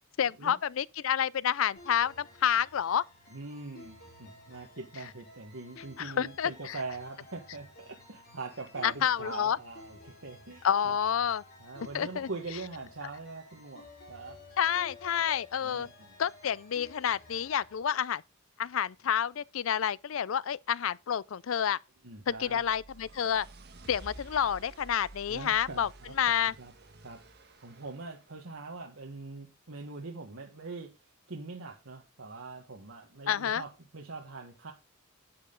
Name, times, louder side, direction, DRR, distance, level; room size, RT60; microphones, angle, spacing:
voice 1, 0.2-3.0 6.0-6.8 8.8-9.6 10.6-11.4 11.9-12.3 14.6-15.9 16.2-18.2 18.6-21.8 22.3-23.5 23.9-25.9 26.2-26.5 33.3-33.6, left 9 dB, 70° left, 0.4 m, -29 dB
sound 1, 1.8-17.8, left 2 dB, 45° left, 4.1 m, -54 dB
voice 2, 3.3-10.9 11.6-14.4 15.6-15.9 22.0-22.6 25.3-26.1 26.5-26.7 27.0-27.2 27.6-30.9 31.3-34.7, right 3 dB, 70° right, 1.5 m, -43 dB
sound 2, 22.2-28.3, right 2 dB, 50° right, 1.6 m, -51 dB
9.5 x 8.9 x 3.8 m
head